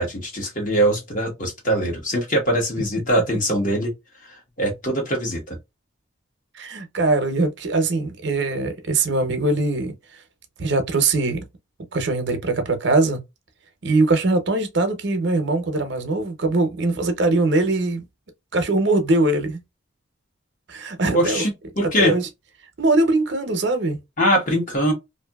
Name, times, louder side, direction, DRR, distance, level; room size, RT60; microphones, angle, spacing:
voice 1, 0.0-3.9 4.2-5.6 21.1-21.5 21.8-22.1 24.2-24.9, right 1 dB, 40° left, 1.2 m, -22 dB
voice 2, 6.5-9.9 10.6-11.4 11.9-13.2 13.8-18.0 18.5-19.6 20.7-21.4 22.0-22.3 22.8-24.0, right 2 dB, 60° right, 0.7 m, -21 dB
2.7 x 2.6 x 2.3 m
head